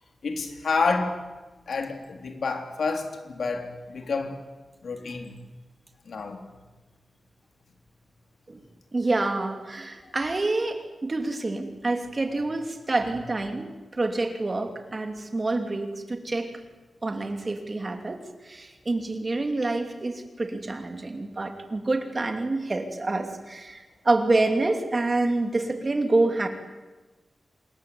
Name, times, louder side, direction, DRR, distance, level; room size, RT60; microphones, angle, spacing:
voice 1, 0.2-1.2 1.7-4.4 4.8-5.3 6.1-6.4 10.0-10.1, left 4 dB, 75° left, 5 dB, 3.7 m, -29 dB
voice 2, 8.9-16.5 17.0-26.5, right 2 dB, 30° right, 6 dB, 2.9 m, -27 dB
27.0 x 22.0 x 9.7 m, 1.2 s
wide cardioid pair, 160°, 0 cm